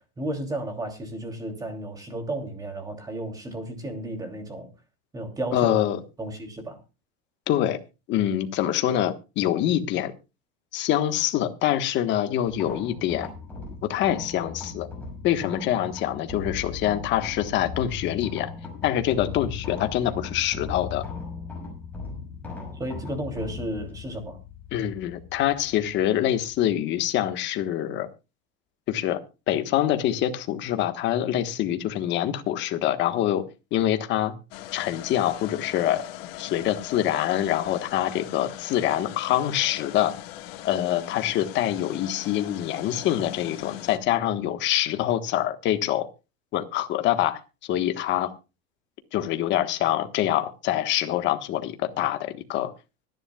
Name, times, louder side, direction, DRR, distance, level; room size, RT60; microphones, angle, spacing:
voice 1, 0.2-4.7 5.1-5.9 6.2-6.8 22.8-24.4, right 1 dB, 10° right, 3.0 m, -33 dB
voice 2, 5.5-6.0 7.5-7.8 8.1-10.1 10.7-13.3 13.8-14.9 15.2-18.5 18.8-21.0 24.7-28.1 28.9-29.2 29.5-33.4 33.7-34.3 34.7-36.0 36.4-40.1 40.6-46.1 46.5-47.4 47.7-48.3 49.1-52.7, left 12 dB, 40° left, 1.4 m, -25 dB
sound 1, 12.5-26.7, left 5 dB, 5° left, 5.8 m, -38 dB
sound 2, 34.5-44.0, left 14 dB, 80° left, 1.7 m, -40 dB
24.5 x 10.5 x 2.4 m
cardioid pair, 165°, 29 cm